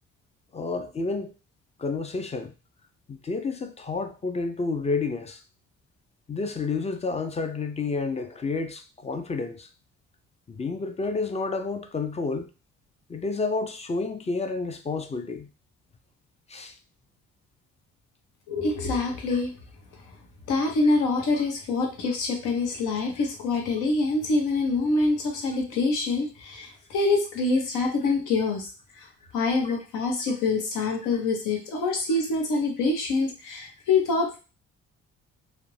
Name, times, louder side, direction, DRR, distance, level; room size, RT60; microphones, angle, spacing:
voice 1, 0.5-1.3 1.8-2.5 3.1-5.4 6.3-9.7 10.5-12.5 13.1-15.5 16.5-16.7 19.3-19.4 20.8-21.0 21.3-21.4 29.6-29.8 31.1-31.2, left 4 dB, 20° left, 0.3 m, -30 dB
voice 2, 18.5-19.5 20.5-28.7 29.3-34.4, left 3 dB, 85° left, 0.8 m, -25 dB
2.4 x 2.1 x 3.1 m
cardioid pair, 90°, 30 cm